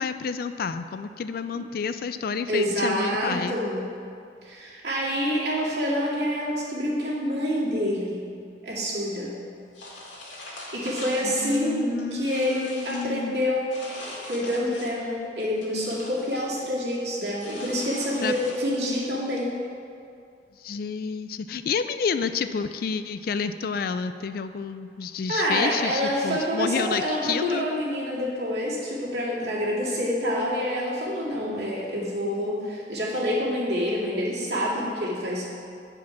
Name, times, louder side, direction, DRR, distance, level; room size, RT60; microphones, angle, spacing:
voice 1, 0.0-3.6 11.2-13.4 18.2-18.3 20.6-27.7, left 5 dB, 55° left, 11 dB, 0.3 m, -29 dB
voice 2, 2.5-3.9 4.4-8.3 8.6-9.4 10.7-13.7 14.3-19.6 25.3-35.5, equal, 65° right, -6 dB, 2.1 m, -27 dB
sound 1, 9.7-11.6 12.0-13.1 13.7-15.1 15.4-16.5 17.4-18.9, left 1 dB, 90° left, 2.0 m, -41 dB
9.3 x 5.0 x 5.8 m, 2.4 s
head